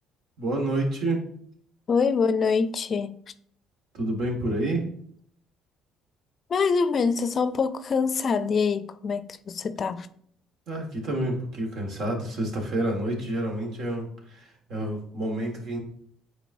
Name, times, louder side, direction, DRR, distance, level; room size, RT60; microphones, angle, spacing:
voice 1, 0.4-1.2 3.9-4.9 10.7-15.8, right 1 dB, 65° right, 1.7 m, -29 dB
voice 2, 1.9-3.2 6.5-10.1, left 5 dB, 45° left, 0.5 m, -25 dB
8.9 x 4.0 x 2.7 m
hypercardioid pair, 65°, 0 cm